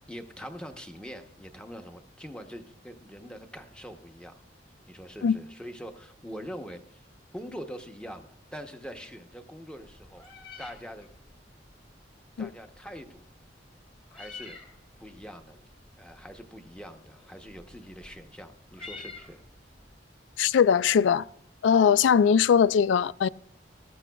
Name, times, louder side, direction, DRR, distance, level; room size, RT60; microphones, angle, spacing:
voice 1, 0.1-4.4 4.9-7.1 7.3-10.3 10.6-11.1 12.4-13.2 14.1-14.6 15.0-15.6 16.0-19.4, equal, 5° left, 0.8 m, -43 dB
Meow, 9.8-19.9, left 4 dB, 30° left, 1.9 m, -50 dB
voice 2, 20.4-21.3 21.6-23.3, left 7 dB, 85° left, 0.3 m, -21 dB
18.0 x 14.0 x 2.3 m
head